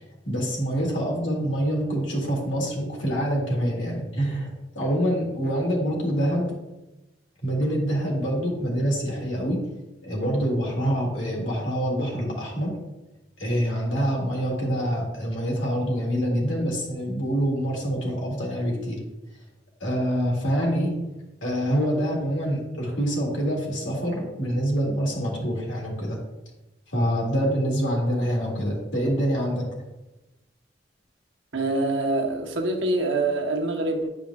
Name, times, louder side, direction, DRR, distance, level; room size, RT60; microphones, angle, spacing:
voice 1, 0.3-4.5 4.8-6.5 7.4-9.6 10.0-12.7 13.4-19.0 19.8-21.0 21.4-26.2 26.9-29.7, equal, 90° left, 2.1 m, -26 dB
voice 2, 31.5-34.1, right 2 dB, 80° right, 1.0 m, -25 dB
9.5 x 5.1 x 2.4 m
head